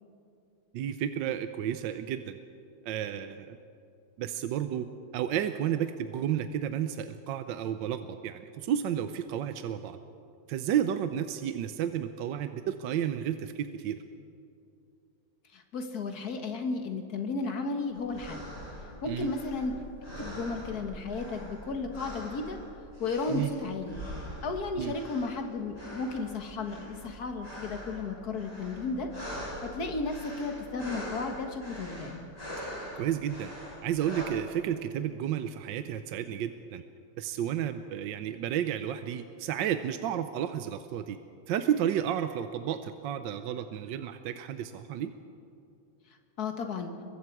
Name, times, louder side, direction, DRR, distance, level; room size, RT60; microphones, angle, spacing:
voice 1, 0.7-2.4 2.8-3.6 4.2-10.0 10.5-14.0 19.0-19.3 23.3-23.5 24.8-24.9 33.0-33.5 33.8-36.8 37.2-41.2 41.5-45.1, right 10 dB, 70° right, 9 dB, 1.2 m, -32 dB
voice 2, 15.5-18.5 19.0-19.7 20.2-22.6 23.0-24.0 24.4-29.1 29.6-32.2 46.4-46.9, left 3 dB, 45° left, 5 dB, 2.0 m, -34 dB
sound 1, 17.9-34.2, equal, 15° left, 7.2 m, -43 dB
29.0 x 22.5 x 4.7 m, 2.5 s
omnidirectional pair, 2.4 m